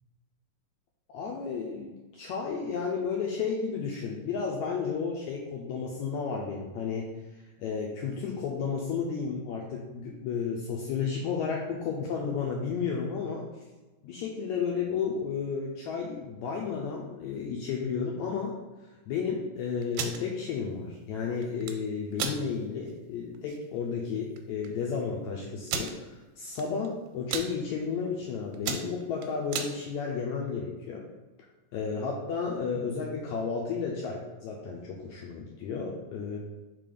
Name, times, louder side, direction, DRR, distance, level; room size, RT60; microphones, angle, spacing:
voice 1, 1.1-7.1 7.3-13.4 14.0-18.6 19.1-31.0 31.7-36.4, left 5 dB, 90° left, -1 dB, 1.6 m, -32 dB
sound 1, 19.8-20.2 21.4-21.8 22.2-22.4 22.9-23.0 23.3-23.6 24.4-24.5 24.6-24.7 25.7-25.9 26.6-26.9 27.1-27.5 28.1-28.2 28.5-29.7, right 7 dB, 85° right, 2.3 m, -33 dB
4.9 x 3.8 x 5.0 m, 1.2 s
omnidirectional pair, 3.9 m